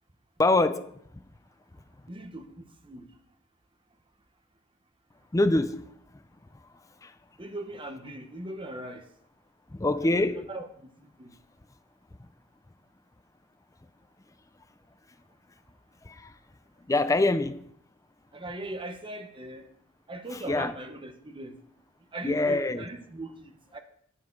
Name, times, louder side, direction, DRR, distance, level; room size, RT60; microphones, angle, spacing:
voice 1, 0.4-0.9 5.3-5.9 7.0-7.1 9.7-10.4 16.0-16.3 16.9-17.7 20.3-20.7 22.2-22.9, left 2 dB, 15° left, 0.5 m, -25 dB
voice 2, 2.1-3.1 7.4-9.1 10.1-10.9 11.2-11.3 18.3-19.7 20.1-21.6 22.1-23.8, right 1 dB, 25° right, 0.9 m, -39 dB
9.6 x 8.4 x 4.5 m
head